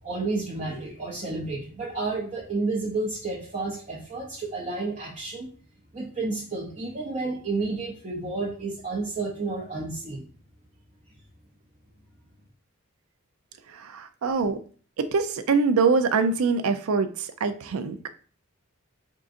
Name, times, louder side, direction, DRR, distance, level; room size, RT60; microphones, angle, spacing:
voice 1, 0.0-5.5 5.9-10.3, right 3 dB, 35° right, -3 dB, 0.6 m, -31 dB
voice 2, 13.7-14.6 15.0-18.1, right 4 dB, 85° right, 10 dB, 0.4 m, -24 dB
3.7 x 3.7 x 2.5 m, 0.41 s
head